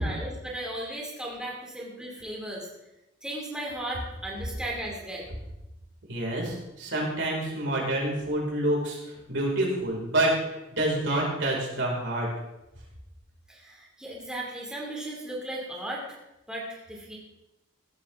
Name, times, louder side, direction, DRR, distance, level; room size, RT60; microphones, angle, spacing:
voice 1, 0.0-2.7 3.2-5.3 13.5-16.2 16.5-17.2, right 1 dB, 5° right, -3 dB, 2.5 m, -36 dB
voice 2, 6.1-10.3 10.8-12.3, right 1 dB, 65° right, -3 dB, 5.0 m, -27 dB
16.5 x 13.0 x 3.6 m, 0.93 s
head